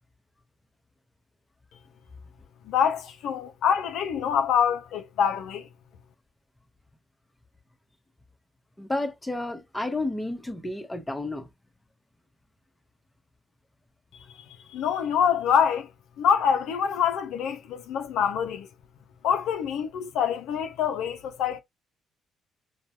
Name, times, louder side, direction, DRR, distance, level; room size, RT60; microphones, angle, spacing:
voice 1, 2.7-5.7 14.5-15.9 16.2-18.7 19.2-21.6, left 8 dB, 75° left, 0.3 m, -25 dB
voice 2, 8.8-11.5, left 2 dB, 15° left, 0.8 m, -31 dB
4.4 x 2.1 x 2.7 m
hypercardioid pair, 55°, 0 cm